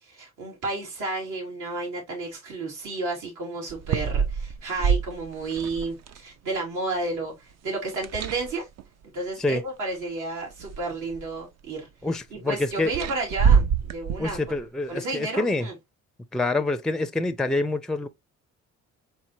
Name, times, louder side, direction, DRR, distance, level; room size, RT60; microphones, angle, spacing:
voice 1, 0.0-8.7 9.0-11.9 12.3-14.4 14.9-15.7, right 3 dB, 80° right, 3.0 m, -32 dB
sound 1, 3.7-6.2 7.9-8.8 9.9-10.0 10.5-11.4 12.9-14.6, right 6 dB, 60° right, 0.6 m, -25 dB
voice 2, 12.0-12.9 14.2-15.7 16.3-18.1, left 2 dB, ahead, 0.4 m, -26 dB
4.6 x 3.6 x 2.7 m
cardioid pair, 90°, 30 cm